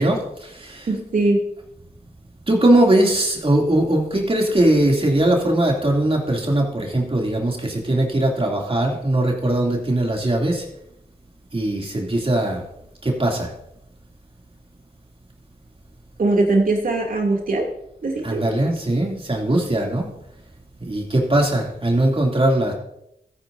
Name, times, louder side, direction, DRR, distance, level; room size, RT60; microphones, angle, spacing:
voice 1, 0.0-0.9 2.5-10.6 11.5-12.6 13.0-13.5 18.2-20.1 20.9-22.7, right 1 dB, 40° right, 0 dB, 2.7 m, -20 dB
voice 2, 0.9-1.4 16.2-17.7 18.0-18.4, right 2 dB, 65° right, 0 dB, 2.7 m, -20 dB
14.5 x 9.4 x 2.7 m, 0.79 s
cardioid pair, 45°, 15 cm